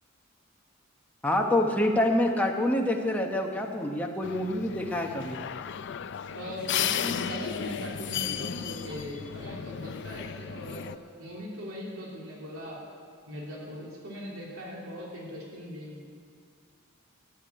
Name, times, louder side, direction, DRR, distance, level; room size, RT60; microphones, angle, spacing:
voice 1, 1.2-5.4, left 1 dB, 10° left, 1 dB, 1.0 m, -26 dB
sound 1, 4.2-11.0, left 9 dB, 60° left, 0.4 m, -34 dB
voice 2, 6.3-10.9 11.2-12.8 13.3-16.1, equal, 85° right, -4 dB, 2.7 m, -39 dB
13.0 x 8.1 x 9.2 m, 2.2 s
head